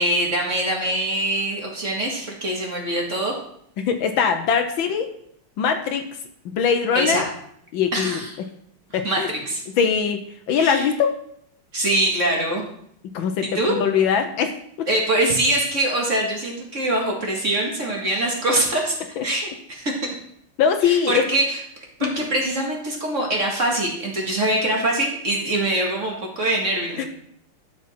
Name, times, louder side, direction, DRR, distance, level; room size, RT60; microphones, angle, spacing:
voice 1, 0.0-3.4 6.9-7.2 7.9-8.4 9.0-9.6 10.6-10.9 11.7-12.6 13.4-13.8 14.9-18.9 19.2-20.0 20.8-21.6 22.0-27.1, right 1 dB, 35° right, -1 dB, 2.1 m, -23 dB
voice 2, 3.8-5.1 5.6-6.1 6.4-7.2 7.7-8.2 8.9-9.3 9.8-10.2 10.5-11.2 13.1-14.5 14.8-14.9 19.2-19.3 20.6-21.2 22.0-22.1 27.0-27.1, left 7 dB, 70° left, 7 dB, 1.5 m, -21 dB
12.5 x 6.2 x 4.3 m, 0.68 s
omnidirectional pair, 2.4 m